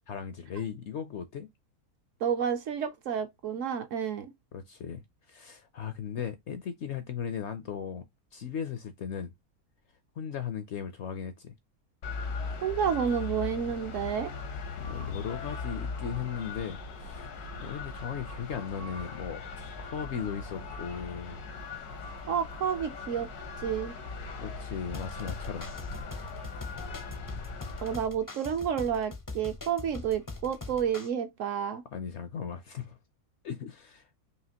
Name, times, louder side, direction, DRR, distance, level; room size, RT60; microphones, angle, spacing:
voice 1, 0.1-1.5 4.5-8.1 8.3-9.3 10.2-11.6 14.8-19.4 19.8-21.4 24.4-25.7 31.9-33.0 33.4-34.1, left 7 dB, 65° left, 0.7 m, -37 dB
voice 2, 2.2-4.3 12.6-14.3 22.3-23.3 23.6-23.9 27.8-31.8, right 8 dB, 65° right, 0.9 m, -30 dB
sound 1, 12.0-28.0, left 4 dB, 85° left, 1.5 m, -39 dB
sound 2, 24.9-31.1, left 3 dB, 30° left, 0.3 m, -42 dB
4.9 x 2.8 x 2.8 m
omnidirectional pair, 1.6 m